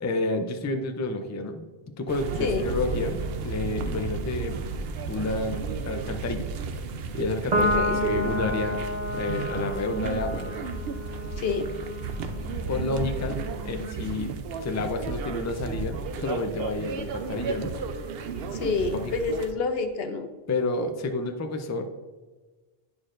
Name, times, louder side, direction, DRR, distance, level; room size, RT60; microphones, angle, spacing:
voice 1, 0.0-1.6 2.0-4.6 5.1-5.6 5.8-6.4 7.1-8.8 9.1-10.5 12.7-14.3 14.6-17.7 19.0-19.1 20.5-21.9, left 2 dB, 25° left, 6 dB, 0.4 m, -30 dB
sound 1, 2.1-19.5, right 4 dB, 75° right, 0.8 m, -33 dB
Piano, 7.5-14.2, left 1 dB, 45° right, 0.9 m, -31 dB
voice 2, 7.6-8.0 11.4-11.7 18.5-20.3, left 4 dB, 75° left, 7 dB, 0.9 m, -28 dB
9.6 x 6.4 x 2.5 m, 1.3 s
omnidirectional pair, 1.0 m